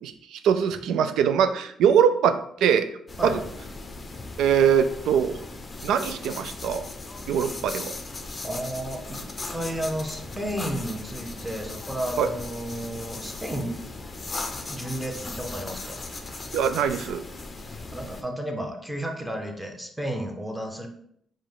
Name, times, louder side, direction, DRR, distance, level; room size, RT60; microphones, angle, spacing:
voice 1, 0.0-2.9 3.2-3.4 4.4-5.4 5.8-6.9 7.3-7.9 12.2-12.3 16.5-17.2, right 8 dB, 85° right, 10 dB, 0.3 m, -22 dB
sound 1, 3.1-18.2, left 3 dB, 30° left, 0.5 m, -38 dB
voice 2, 8.4-9.2 9.5-13.9 14.7-16.0 17.9-20.9, right 1 dB, 5° right, 3 dB, 0.8 m, -32 dB
4.9 x 2.1 x 3.8 m, 0.68 s
cardioid pair, 90°, 0 cm